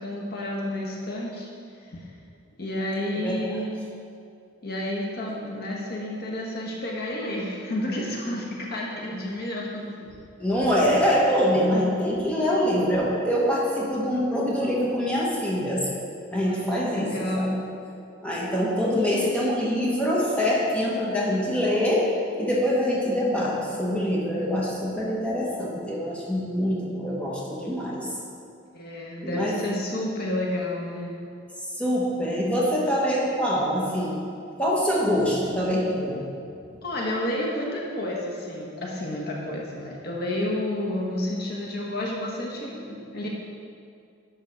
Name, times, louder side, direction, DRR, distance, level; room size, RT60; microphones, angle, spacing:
voice 1, 0.0-1.5 1.9-2.1 2.6-3.7 4.6-9.8 16.3-17.6 28.7-31.2 36.8-43.3, left 1 dB, 55° left, -3 dB, 1.2 m, -30 dB
voice 2, 10.4-15.8 16.3-17.5 18.2-22.0 22.4-28.1 29.2-29.6 31.8-34.1 34.6-36.2, equal, 5° left, -6 dB, 1.3 m, -24 dB
11.0 x 3.8 x 5.8 m, 2.4 s
head